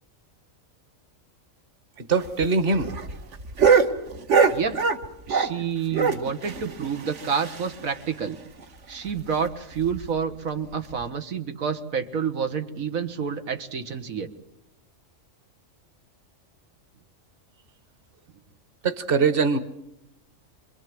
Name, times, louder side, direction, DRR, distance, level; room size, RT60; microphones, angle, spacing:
voice 1, 2.1-2.9 18.8-19.6, right 4 dB, 45° right, 10 dB, 1.6 m, -22 dB
sound 1, 2.2-5.6 5.9-7.9 8.2-8.3 8.6-8.7 9.1-9.2 9.8-10.1 10.9-11.0, right 5 dB, 60° right, 1.6 m, -23 dB
voice 2, 5.3-8.4 8.9-14.3, right 6 dB, 90° right, 6 dB, 1.9 m, -29 dB
26.5 x 22.0 x 7.7 m, 0.81 s
omnidirectional pair, 1.4 m